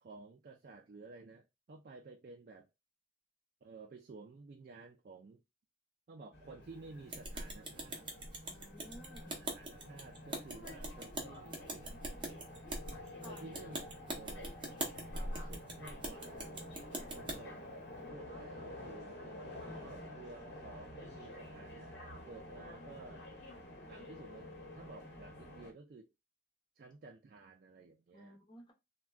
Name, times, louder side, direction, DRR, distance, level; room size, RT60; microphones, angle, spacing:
voice 1, 0.0-2.7 3.6-5.4 6.1-8.2 9.5-11.9 13.3-14.6 15.1-16.6 17.1-17.8 18.1-22.0 22.3-23.3 23.9-26.1 26.8-28.3, right 3 dB, 50° right, 0.3 m, -54 dB
sound 1, 6.3-25.7, left 1 dB, 65° left, 1.0 m, -50 dB
sound 2, 7.1-17.4, right 1 dB, 25° right, 0.7 m, -42 dB
voice 2, 8.5-9.4 13.1-13.5 28.1-28.7, equal, 25° left, 0.8 m, -55 dB
sound 3, 12.8-13.9 17.9-19.9 23.9-24.8, left 4 dB, 80° left, 0.3 m, -53 dB
3.4 x 2.2 x 2.3 m
head